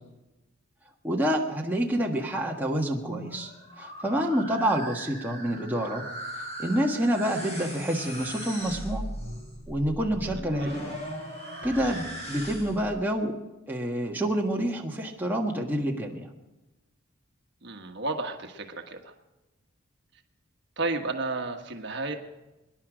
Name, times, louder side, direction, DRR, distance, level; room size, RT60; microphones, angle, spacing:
voice 1, 1.0-3.5 3.8-6.0 6.6-9.0 9.7-11.0 11.6-13.4 13.7-16.3, right 1 dB, 10° right, -1 dB, 1.5 m, -28 dB
sound 1, 3.0-12.9, right 1 dB, 30° left, 5.6 m, -39 dB
voice 2, 17.6-19.1 20.8-22.1, right 3 dB, 55° right, 4 dB, 1.3 m, -32 dB
24.5 x 11.0 x 5.0 m, 1.0 s
head